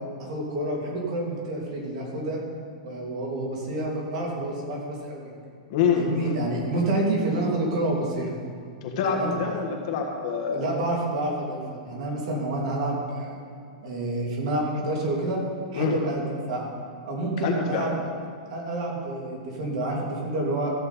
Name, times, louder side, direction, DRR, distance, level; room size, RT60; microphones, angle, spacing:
voice 1, 0.2-2.4 2.8-5.3 5.9-8.3 9.1-9.4 10.5-13.4 13.8-15.4 15.7-16.7 17.0-18.1 18.5-20.7, right 1 dB, 55° right, -2 dB, 2.7 m, -28 dB
voice 2, 5.7-6.4 8.8-10.6 15.7-16.0 17.4-17.8, left 6 dB, 45° left, 0 dB, 1.6 m, -26 dB
14.0 x 7.5 x 4.3 m, 2.3 s
supercardioid pair, 170°, 4 cm